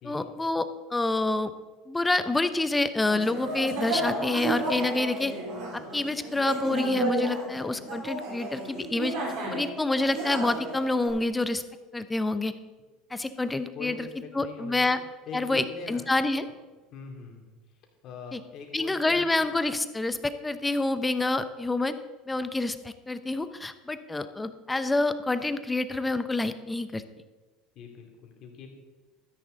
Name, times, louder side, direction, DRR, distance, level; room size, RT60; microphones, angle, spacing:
voice 1, 0.0-1.5 1.9-5.3 5.7-9.1 9.5-11.6 11.9-12.5 13.1-14.1 14.3-15.0 15.3-16.4 18.3-18.4 18.7-22.0 22.3-27.0, left 2 dB, 15° left, 12 dB, 0.8 m, -27 dB
sound 1, 2.5-2.6 3.0-11.1, right 2 dB, 65° right, 4.1 m, -32 dB
voice 2, 13.7-14.9 15.3-16.0 16.3-16.5 16.9-17.5 18.0-19.5 27.7-28.7, left 6 dB, 55° left, 2 dB, 2.8 m, -42 dB
12.5 x 10.0 x 4.0 m, 1.2 s
hypercardioid pair, 85°, 0 cm